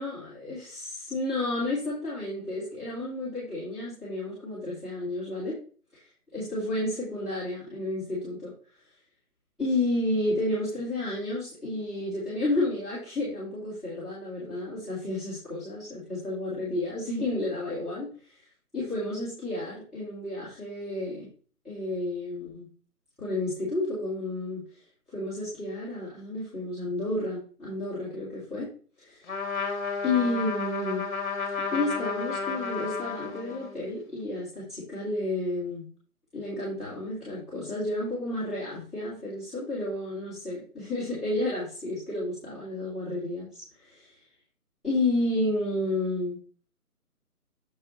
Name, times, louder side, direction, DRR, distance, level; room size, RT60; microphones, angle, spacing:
voice 1, 0.0-5.6 6.3-8.5 9.6-18.1 18.7-21.3 21.6-22.7 23.2-24.6 25.1-28.7 29.0-29.3 30.0-31.0 31.7-35.9 36.3-44.1 44.8-46.4, left 2 dB, ahead, -14 dB, 1.7 m, -31 dB
Trumpet, 29.3-33.8, left 5 dB, 30° left, 1.6 m, -32 dB
6.9 x 4.6 x 4.3 m, 0.40 s
figure-of-eight pair, 155°, 46 cm